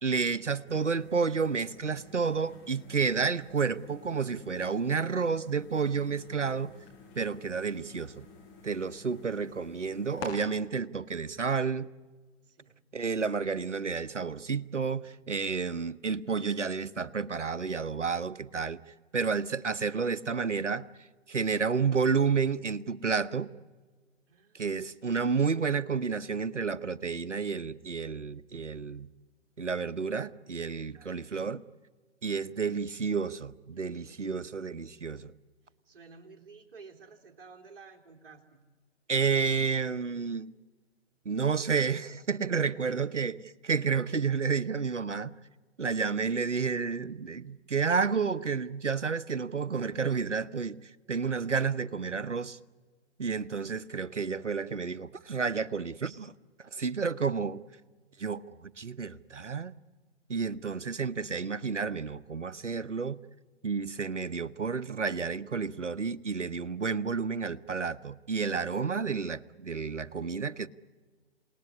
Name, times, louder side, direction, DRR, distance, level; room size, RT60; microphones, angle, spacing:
voice 1, 0.0-6.7 7.2-8.2 8.6-11.9 12.9-18.8 19.1-20.8 21.3-23.5 24.5-29.1 29.6-31.6 32.2-35.3 39.1-40.5 41.2-45.3 45.8-50.8 51.1-52.6 53.2-56.3 56.7-57.6 58.2-59.7 60.3-63.2 63.6-70.7, right 5 dB, 85° right, 0.9 m, -30 dB
sound 1, 0.7-10.3, left 5 dB, 30° left, 5.6 m, -50 dB
voice 2, 8.8-9.5 12.4-12.7 24.3-24.7 30.8-31.2 32.2-32.8 34.1-35.1 35.8-38.6 42.8-42.9, right 4 dB, 50° right, 3.5 m, -54 dB
28.5 x 19.0 x 9.7 m
figure-of-eight pair, 125°, 35 cm